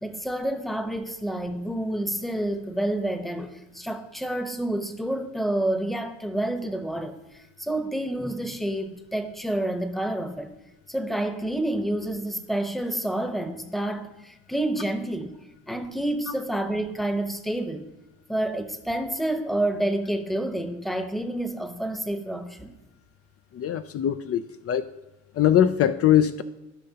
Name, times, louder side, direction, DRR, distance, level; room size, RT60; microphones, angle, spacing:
voice 1, 0.0-7.1 7.6-10.5 10.9-15.3 15.7-17.9 18.3-22.7, right 1 dB, ahead, 0.9 m, -29 dB
voice 2, 23.5-24.8 25.4-26.4, left 10 dB, 50° left, 0.4 m, -21 dB
15.0 x 5.4 x 2.8 m
cardioid pair, 90°, 30 cm